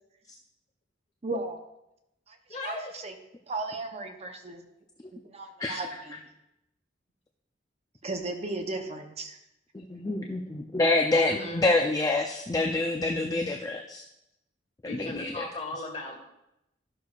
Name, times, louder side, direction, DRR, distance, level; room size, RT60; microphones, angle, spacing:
voice 1, 1.2-1.6 2.3-3.1 3.5-4.6 5.1-6.2 8.0-9.4, right 2 dB, 35° right, 5 dB, 0.7 m, -36 dB
voice 2, 2.5-2.9 11.1-11.7 14.8-16.2, left 2 dB, 35° left, 0 dB, 1.5 m, -37 dB
voice 3, 9.7-14.0 14.8-15.4, left 2 dB, 20° left, 2 dB, 0.5 m, -27 dB
12.5 x 6.5 x 2.4 m, 0.87 s
head